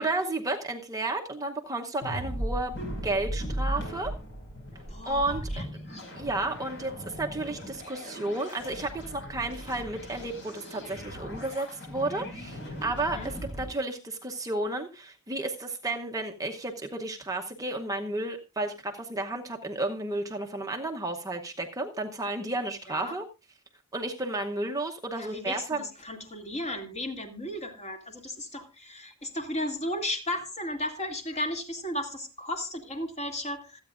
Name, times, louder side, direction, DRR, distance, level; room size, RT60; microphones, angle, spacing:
voice 1, 0.0-2.7 3.0-4.1 5.0-5.4 5.7-5.8 6.1-23.2 23.9-25.8, right 2 dB, 15° right, 3 dB, 0.8 m, -32 dB
sound 1, 2.0-13.6, equal, 55° left, 5.3 m, -37 dB
voice 2, 4.9-6.0 13.0-13.3 22.9-23.1 25.2-33.8, left 1 dB, 30° left, 4 dB, 2.4 m, -35 dB
26.0 x 8.8 x 2.5 m, 0.28 s
head